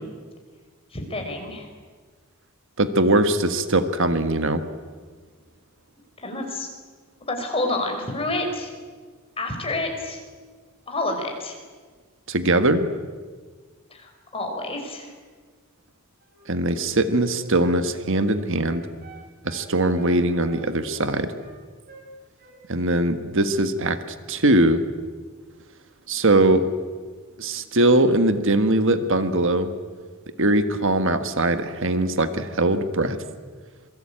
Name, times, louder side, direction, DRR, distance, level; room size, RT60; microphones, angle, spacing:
voice 1, 0.9-1.7 6.2-6.7 7.3-8.7 9.4-10.2 10.9-11.6 13.9-15.1, left 2 dB, 25° left, 3 dB, 5.3 m, -29 dB
voice 2, 2.8-4.6 12.3-12.9 16.5-18.9 19.4-21.3 22.7-24.0 24.3-24.8 26.1-26.7 27.4-29.7 30.4-33.2, right 1 dB, 60° right, 10 dB, 1.5 m, -21 dB
Wind instrument woodwind instrument, 16.2-19.7 20.0-21.6 21.9-22.1 22.4-23.0 23.3-23.6, right 3 dB, 45° right, 6.6 m, -47 dB
27.5 x 22.5 x 8.8 m, 1.5 s
head